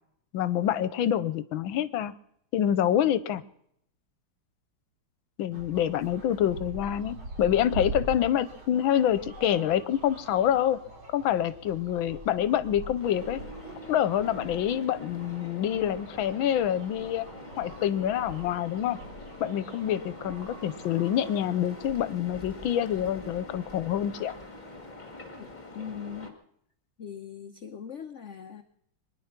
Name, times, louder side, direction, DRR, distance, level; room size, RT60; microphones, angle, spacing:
voice 1, 0.3-2.1 2.5-3.4 5.4-10.8 11.1-13.4 13.9-17.3 17.6-19.0 19.4-24.3, left 10 dB, 75° left, 15 dB, 1.6 m, -26 dB
sound 1, 5.5-22.0, right 2 dB, 75° right, 4.2 m, -43 dB
sound 2, 13.0-26.3, left 1 dB, 20° left, 2.0 m, -45 dB
voice 2, 25.7-26.4 27.0-28.6, left 8 dB, 60° left, 8 dB, 0.8 m, -40 dB
23.5 x 10.5 x 5.9 m, 0.71 s
omnidirectional pair, 2.3 m